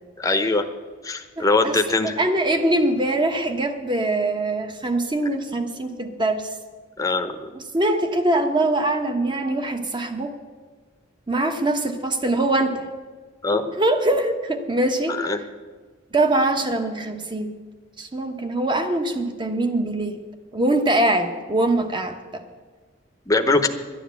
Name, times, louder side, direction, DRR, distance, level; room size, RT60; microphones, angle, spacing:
voice 1, 0.2-0.6 1.0-2.2 7.0-7.5 13.4-13.6 15.1-15.4 23.3-23.7, left 3 dB, 20° left, 7 dB, 0.9 m, -21 dB
voice 2, 1.4-1.8 2.2-6.5 7.7-10.3 11.3-12.9 13.5-15.4 16.1-17.5 18.0-20.2 20.5-22.4, right 1 dB, 25° right, 6 dB, 1.1 m, -23 dB
11.5 x 10.0 x 8.3 m, 1.4 s
head